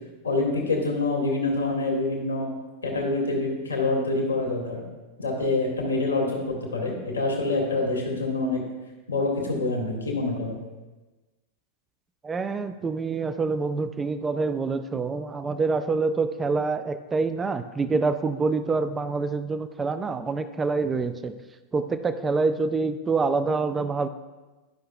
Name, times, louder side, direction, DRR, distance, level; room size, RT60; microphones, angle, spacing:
voice 1, 0.2-2.5 2.8-4.8 5.2-8.6 9.1-10.5, left 2 dB, 80° left, 0 dB, 1.6 m, -26 dB
voice 2, 12.2-21.4 21.7-24.1, right 4 dB, 15° right, 11 dB, 0.3 m, -26 dB
11.5 x 5.6 x 2.2 m, 1.2 s
figure-of-eight pair, 90°, 0 cm